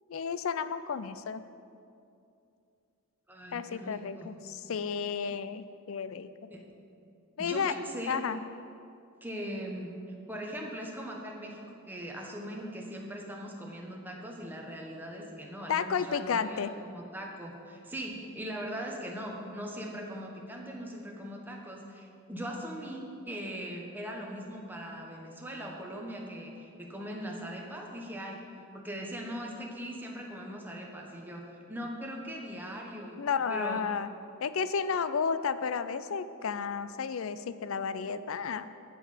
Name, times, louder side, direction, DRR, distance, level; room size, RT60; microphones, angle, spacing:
voice 1, 0.1-1.4 3.5-6.5 7.4-7.8 8.1-8.4 15.7-16.7 33.2-34.1 34.4-38.7, left 6 dB, 80° left, 13 dB, 0.4 m, -32 dB
voice 2, 3.3-4.3 6.5-6.6 7.4-8.2 9.2-9.9 10.3-28.4 28.7-33.2 33.5-33.8, equal, 10° right, -1 dB, 1.2 m, -40 dB
11.0 x 7.7 x 5.0 m, 2.6 s
head